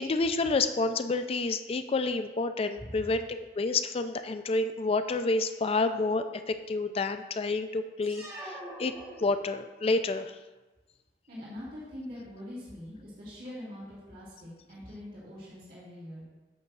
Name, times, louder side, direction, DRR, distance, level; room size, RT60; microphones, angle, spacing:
voice 1, 0.0-8.9 9.2-10.3, left 3 dB, 35° left, 9 dB, 0.3 m, -29 dB
sound 1, 8.0-9.9, right 1 dB, 15° right, 1.3 m, -44 dB
voice 2, 11.3-16.2, left 1 dB, 55° right, -9 dB, 2.6 m, -43 dB
8.4 x 3.5 x 5.9 m, 1.2 s
head